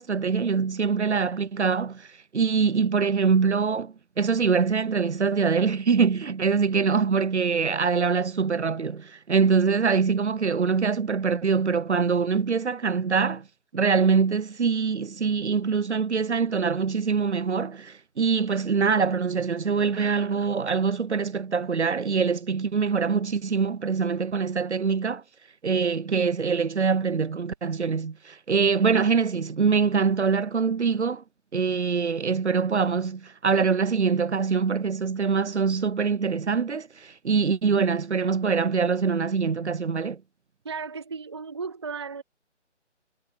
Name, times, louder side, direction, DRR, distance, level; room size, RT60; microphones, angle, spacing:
voice 1, 0.0-2.1 2.3-13.4 13.7-25.2 25.6-31.2 31.5-40.2, right 5 dB, 65° right, 0.9 m, -24 dB
voice 2, 40.6-42.2, right 5 dB, 25° right, 0.8 m, -35 dB
figure-of-eight pair, 155°, 36 cm